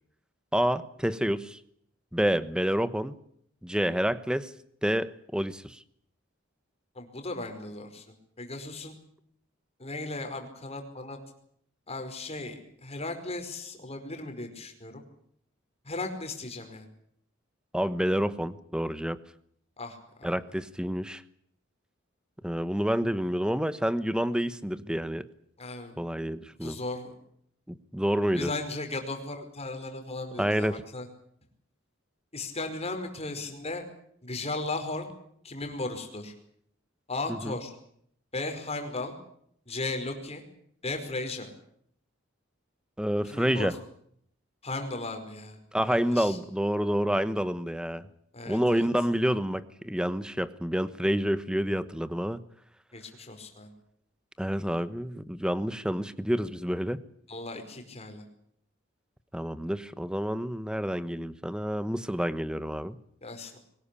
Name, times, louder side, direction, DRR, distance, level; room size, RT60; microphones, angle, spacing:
voice 1, 0.5-1.6 2.1-3.1 3.6-4.5 4.8-5.8 17.7-19.2 20.2-21.2 22.4-25.3 26.0-26.8 27.7-28.5 30.4-30.8 37.3-37.6 43.0-43.7 45.7-48.1 48.5-52.4 54.4-57.0 59.3-63.0, equal, 5° right, 14 dB, 1.1 m, -28 dB
voice 2, 6.9-8.9 9.8-11.2 11.9-15.0 15.8-16.9 19.8-20.3 25.6-26.0 26.6-27.1 28.3-31.1 32.3-33.8 34.2-35.1 35.4-36.3 37.1-37.7 38.3-39.1 39.7-40.4 40.8-41.5 43.2-43.7 44.6-45.6 45.9-46.4 48.3-48.9 52.9-53.7 57.3-58.2 63.2-63.6, left 2 dB, 30° left, 6 dB, 5.0 m, -36 dB
23.0 x 20.0 x 8.5 m, 0.66 s
head